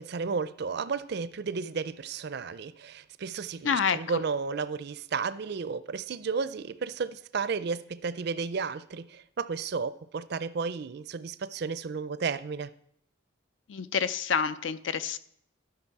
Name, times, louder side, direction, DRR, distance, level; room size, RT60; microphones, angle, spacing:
voice 1, 0.0-12.7, right 5 dB, 55° right, 0.4 m, -33 dB
voice 2, 3.6-4.2 13.7-15.2, left 6 dB, 70° left, 0.5 m, -28 dB
12.5 x 5.9 x 4.7 m
head